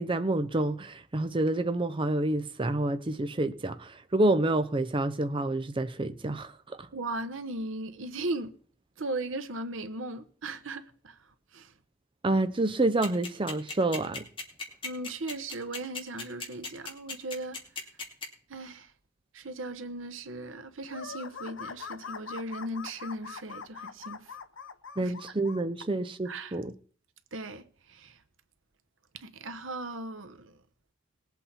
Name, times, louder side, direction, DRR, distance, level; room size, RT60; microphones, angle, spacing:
voice 1, 0.0-6.9 12.2-14.2 25.0-26.7, right 2 dB, 25° right, 0.6 m, -28 dB
voice 2, 6.9-8.5 9.0-11.2 11.5-11.7 14.8-17.6 18.5-18.9 19.3-24.3 25.0-25.1 26.2-26.6 27.3-28.2 29.1-30.6, right 2 dB, 90° right, 1.1 m, -37 dB
sound 1, 13.0-18.2, left 4 dB, 25° left, 2.7 m, -36 dB
sound 2, 20.9-25.6, left 6 dB, 75° left, 0.8 m, -42 dB
20.5 x 8.1 x 4.3 m
head